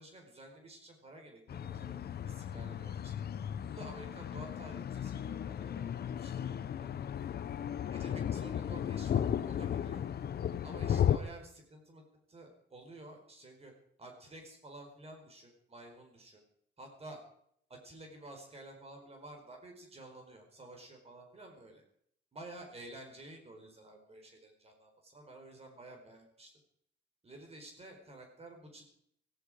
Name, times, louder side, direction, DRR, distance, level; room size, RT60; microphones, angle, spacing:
voice 1, 0.0-1.9 2.2-3.2 3.7-6.9 7.9-10.0 10.6-13.7 14.0-16.4 16.8-17.2 17.7-21.8 22.3-26.5 27.2-28.8, right 2 dB, 35° right, 3 dB, 4.6 m, -51 dB
sound 1, 1.5-11.2, left 9 dB, 60° left, 0.9 m, -35 dB
17.5 x 16.0 x 5.0 m, 0.67 s
cardioid pair, 130°, 19 cm